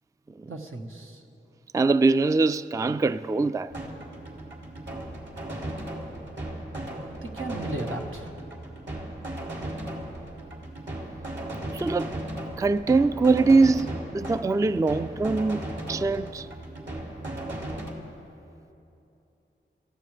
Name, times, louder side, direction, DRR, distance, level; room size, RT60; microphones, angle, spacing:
voice 1, 0.5-1.2 7.2-8.4, right 2 dB, 80° right, 1.5 m, -36 dB
voice 2, 1.7-3.7 11.7-12.1 12.6-16.5, right 3 dB, 15° right, 0.3 m, -23 dB
sound 1, 3.7-17.9, right 1 dB, 60° right, 2.9 m, -36 dB
27.5 x 14.5 x 3.4 m
wide cardioid pair, 55°, 21 cm